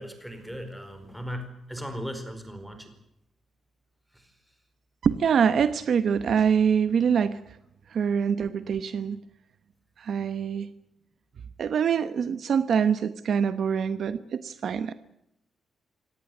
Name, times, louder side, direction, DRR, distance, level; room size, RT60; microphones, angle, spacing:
voice 1, 0.0-2.9 4.1-4.3, equal, ahead, 6 dB, 4.7 m, -37 dB
voice 2, 5.0-7.6 7.9-9.2 10.0-10.7 11.6-14.9, right 7 dB, 50° right, 12 dB, 0.9 m, -24 dB
25.5 x 18.5 x 8.0 m, 0.82 s
wide cardioid pair, 175°, 0 cm